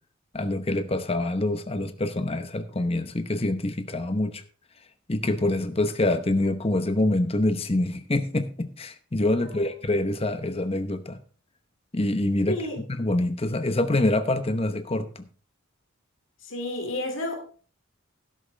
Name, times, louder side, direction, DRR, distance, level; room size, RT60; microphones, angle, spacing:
voice 1, 0.3-4.4 5.1-11.2 11.9-15.2, left 1 dB, 30° left, 9 dB, 0.9 m, -26 dB
voice 2, 12.5-12.8 16.4-17.4, left 1 dB, 70° left, 4 dB, 2.7 m, -31 dB
12.5 x 11.0 x 3.4 m, 0.40 s
head